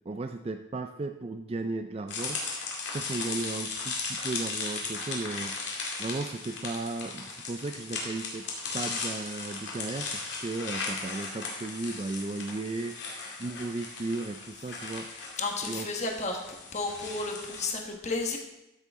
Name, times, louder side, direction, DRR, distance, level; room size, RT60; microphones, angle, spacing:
voice 1, 0.1-8.5 8.7-15.1 15.7-15.9, right 3 dB, 30° right, 7 dB, 0.3 m, -35 dB
sound 1, 2.1-17.7, left 4 dB, 60° left, 2.3 m, -37 dB
voice 2, 15.4-18.4, left 3 dB, 35° left, 2 dB, 1.3 m, -32 dB
14.0 x 6.8 x 3.6 m, 0.94 s
head